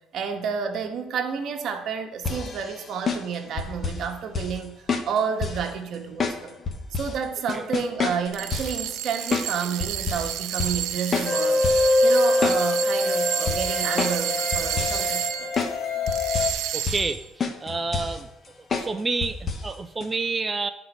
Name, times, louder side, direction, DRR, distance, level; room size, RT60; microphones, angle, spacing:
voice 1, 0.1-4.8 5.1-6.6 6.9-11.7 12.0-15.5, right 6 dB, 50° right, 5 dB, 1.1 m, -30 dB
sound 1, 2.2-4.1 4.3-4.6 4.9-5.7 6.2-7.2 7.5-8.8 9.3-9.5 9.8-10.3 10.6-10.9 11.1-11.9 12.2-13.0 13.5-14.3 14.5-15.1 15.6-15.8 16.1-16.6 16.9-17.1 17.4-18.2 18.7-18.9 19.2-19.7 20.0-20.1, left 5 dB, 30° left, 0.7 m, -28 dB
sound 2, 8.3-15.7 16.1-17.2, right 11 dB, 70° right, 0.6 m, -30 dB
sound 3, 11.2-16.5, left 2 dB, 70° left, 1.0 m, -24 dB
voice 2, 16.7-17.2 17.6-18.3 18.8-20.7, right 3 dB, 15° right, 8 dB, 0.3 m, -28 dB
10.5 x 3.9 x 6.0 m, 0.85 s
cardioid pair, 160°, 0 cm